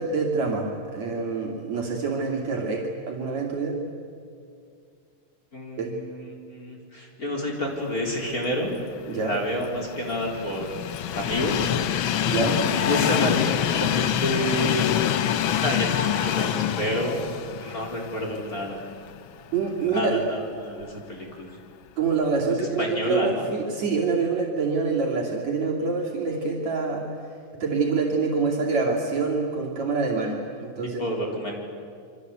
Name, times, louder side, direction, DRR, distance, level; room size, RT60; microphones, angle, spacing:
voice 1, 0.0-3.8 5.8-6.0 9.1-9.4 12.3-12.6 19.5-20.2 22.0-27.1 27.6-31.0, right 4 dB, 65° right, -2 dB, 3.9 m, -26 dB
voice 2, 5.5-8.7 9.2-10.8 11.1-11.7 12.7-15.2 15.6-17.3 17.6-18.8 19.8-21.6 22.6-23.5 31.0-31.6, left 1 dB, 30° left, -1 dB, 4.3 m, -29 dB
Train, 9.1-19.2 19.6-19.7 20.8-20.9, left 10 dB, 75° left, 1.2 m, -26 dB
28.0 x 24.5 x 8.3 m, 2.3 s
omnidirectional pair, 3.4 m